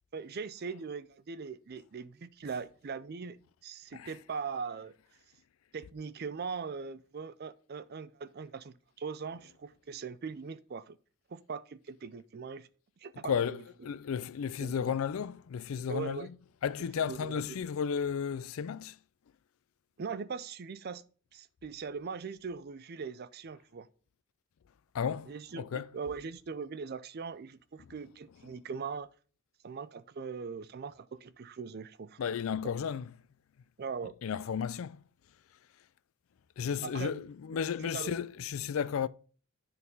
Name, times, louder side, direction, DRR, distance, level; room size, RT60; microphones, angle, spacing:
voice 1, 0.1-3.4 3.6-4.9 5.7-11.0 11.3-12.7 13.0-13.6 14.6-15.0 15.9-16.3 17.0-17.6 20.0-21.0 21.3-23.9 25.2-29.1 29.6-32.2 33.8-34.1 36.8-37.2 37.8-38.2, right 5 dB, 50° right, 0.4 m, -40 dB
voice 2, 13.2-16.3 16.6-19.0 24.9-25.9 32.2-33.1 34.2-35.0 36.6-39.1, left 7 dB, 80° left, 0.4 m, -33 dB
9.8 x 4.1 x 5.3 m
head